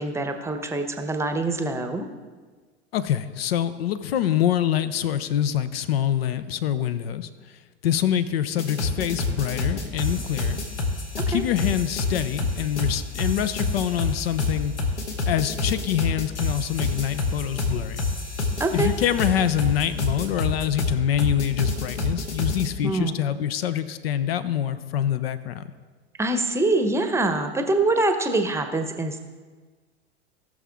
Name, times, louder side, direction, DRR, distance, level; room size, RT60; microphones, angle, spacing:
voice 1, 0.0-2.1 11.2-11.4 18.6-18.9 22.8-23.3 26.2-29.2, right 2 dB, 10° right, 7 dB, 0.9 m, -24 dB
voice 2, 2.9-7.5 7.8-10.6 11.3-14.7 15.2-18.0 18.7-25.7, left 10 dB, 55° left, 13 dB, 0.7 m, -25 dB
sound 1, 8.6-22.7, left 3 dB, 70° left, 1.9 m, -27 dB
18.5 x 6.4 x 3.6 m, 1.4 s
figure-of-eight pair, 85°, 36 cm